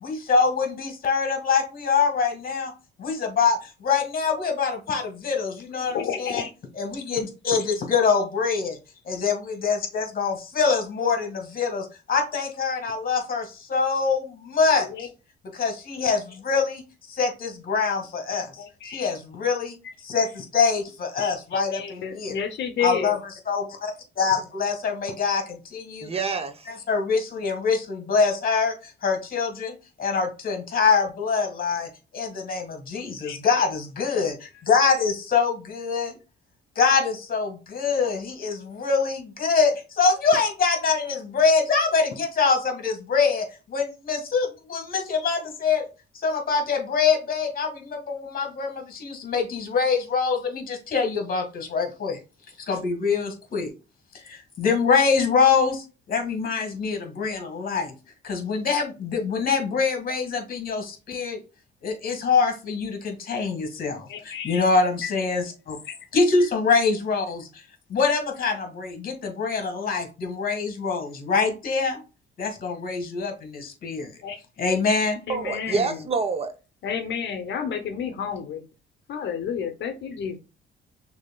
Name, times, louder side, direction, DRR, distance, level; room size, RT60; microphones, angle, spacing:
voice 1, 0.0-2.7 3.0-6.4 6.8-8.8 9.0-14.9 15.5-16.8 17.1-19.8 20.0-22.3 22.8-23.2 23.5-26.1 26.9-28.7 29.0-34.4 34.6-36.1 36.7-45.8 46.1-52.2 52.7-53.7 54.2-57.9 58.2-61.4 61.8-65.8 66.1-67.5 67.9-72.0 72.4-74.1 74.6-75.2, left 5 dB, 45° left, 4 dB, 1.6 m, -24 dB
voice 2, 5.9-6.5 14.8-15.1 18.6-19.1 19.8-19.9 21.2-23.2 33.2-33.7 64.1-64.7 65.0-65.1 65.8-65.9 74.2-74.4 75.3-76.1 76.8-78.6 79.1-80.4, left 7 dB, 60° left, 7 dB, 0.7 m, -31 dB
voice 3, 26.0-26.8 75.3-76.5, right 4 dB, 30° right, 8 dB, 0.6 m, -27 dB
6.2 x 2.7 x 2.2 m, 0.31 s
cardioid pair, 110°, 20 cm